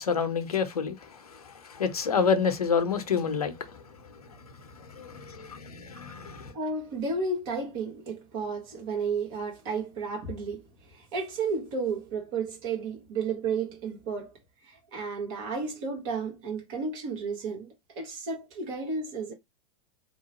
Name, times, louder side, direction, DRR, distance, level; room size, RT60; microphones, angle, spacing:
voice 1, 0.0-3.8 4.8-6.5, left 6 dB, 90° left, 0.6 m, -29 dB
voice 2, 6.5-14.3 14.6-19.3, right 4 dB, 55° right, 1.2 m, -32 dB
2.8 x 2.0 x 3.0 m
hypercardioid pair, 95°, 19 cm